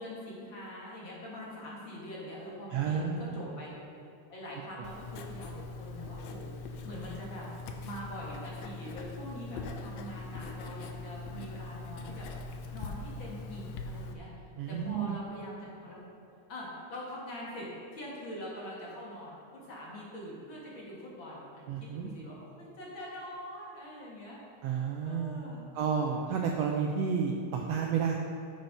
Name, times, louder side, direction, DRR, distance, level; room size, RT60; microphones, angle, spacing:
voice 1, 0.0-3.8 4.3-7.5 7.8-12.3 12.7-14.3 14.7-16.0 16.5-25.6, equal, 45° left, -5 dB, 2.4 m, -44 dB
voice 2, 2.7-3.4 4.8-4.9 14.6-15.2 21.7-22.2 24.6-25.4 25.7-28.1, right 6 dB, 75° right, 1 dB, 1.5 m, -31 dB
Writing, 4.8-14.1, left 3 dB, 75° left, 1.8 m, -42 dB
10.5 x 6.6 x 5.4 m, 2.8 s
omnidirectional pair, 3.4 m